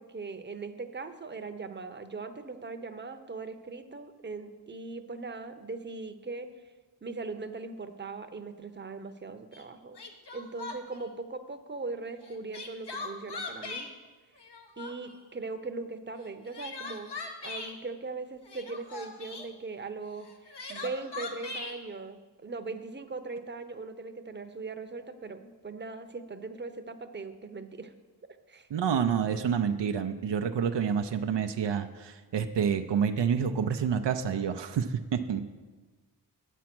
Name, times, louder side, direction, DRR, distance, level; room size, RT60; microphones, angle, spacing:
voice 1, 0.0-6.5 7.0-10.0 10.3-13.9 14.8-17.1 17.4-27.9 28.5-28.7, right 3 dB, 25° right, 8 dB, 0.8 m, -40 dB
Crying sobbing, 9.5-9.6 9.9-11.0 12.2-13.9 14.4-15.2 16.2-17.7 18.4-19.5 20.2-21.8, left 3 dB, 75° left, 1.3 m, -40 dB
voice 2, 28.7-35.4, right 7 dB, 80° right, 7 dB, 0.6 m, -28 dB
8.5 x 8.2 x 6.0 m, 1.3 s
cardioid pair, 50°, 42 cm